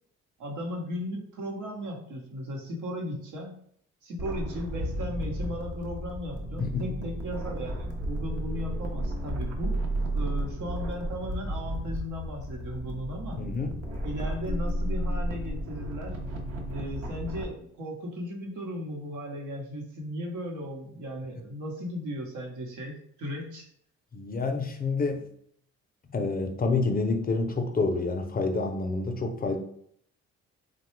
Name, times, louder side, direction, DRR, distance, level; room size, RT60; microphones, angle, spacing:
voice 1, 0.4-3.6 4.0-9.8 10.1-13.4 14.0-16.2 16.7-23.7, equal, 85° right, 0 dB, 0.9 m, -36 dB
sound 1, 4.2-17.4, right 1 dB, 55° right, 0.7 m, -33 dB
voice 2, 6.6-7.0 13.4-13.8 24.1-25.3 26.1-29.6, left 3 dB, 30° left, 5 dB, 0.5 m, -28 dB
3.1 x 2.2 x 3.1 m, 0.64 s
cardioid pair, 90°, 30 cm